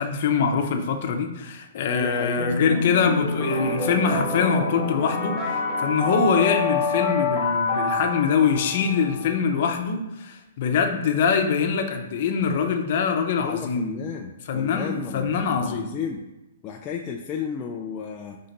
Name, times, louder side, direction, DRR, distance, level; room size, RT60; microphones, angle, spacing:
voice 1, 0.0-14.0 14.5-15.9, left 6 dB, 40° left, 4 dB, 0.8 m, -24 dB
voice 2, 1.9-2.8 13.4-16.3 16.6-18.4, left 7 dB, 15° left, 0 dB, 0.3 m, -33 dB
sound 1, 2.4-9.4, left 3 dB, ahead, 1.4 m, -26 dB
5.7 x 3.7 x 5.2 m, 0.99 s
hypercardioid pair, 170°, 0 cm